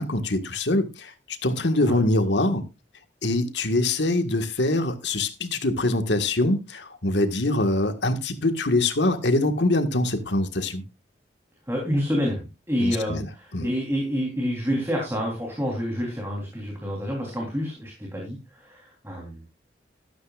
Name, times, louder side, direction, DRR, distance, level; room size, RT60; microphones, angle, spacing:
voice 1, 0.0-2.7 3.2-10.8 12.8-13.3 13.5-13.7, left 2 dB, 75° left, 1.7 m, -24 dB
voice 2, 11.7-19.4, equal, 15° right, 3.6 m, -28 dB
13.5 x 12.5 x 2.5 m
head